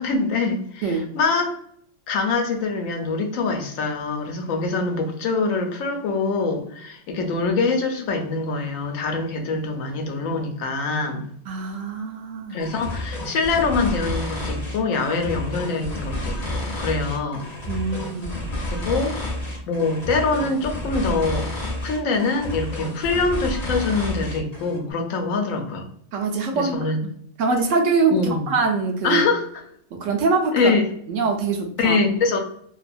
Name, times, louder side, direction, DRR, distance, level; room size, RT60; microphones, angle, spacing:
voice 1, 0.0-1.5 2.1-11.2 12.5-17.4 18.7-19.1 19.7-21.5 21.8-25.8 26.5-27.0 28.1-28.5 29.0-29.6 30.5-30.9 31.8-32.4, left 3 dB, 75° left, 3 dB, 1.0 m, -24 dB
voice 2, 11.5-12.7 17.7-18.4 26.1-26.9 27.4-29.2 29.9-30.7 31.1-32.0, right 4 dB, 70° right, 3 dB, 0.9 m, -23 dB
sound 1, 12.6-24.8, left 1 dB, 40° left, 0.7 m, -30 dB
2.8 x 2.3 x 2.5 m, 0.67 s
omnidirectional pair, 1.5 m